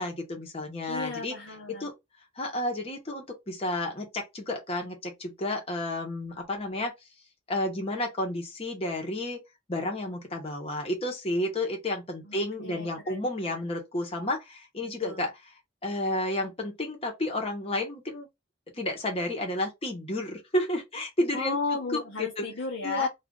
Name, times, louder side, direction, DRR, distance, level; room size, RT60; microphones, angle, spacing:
voice 1, 0.0-1.3 1.8-1.9 2.4-6.9 7.5-9.4 9.7-15.5 15.8-18.3 18.7-21.6 21.9-22.4 22.8-23.1, left 1 dB, 30° left, 0.9 m, -31 dB
voice 2, 0.9-1.9 12.2-13.2 15.0-15.2 21.3-23.1, left 4 dB, 75° left, 0.8 m, -34 dB
2.4 x 2.4 x 3.6 m
head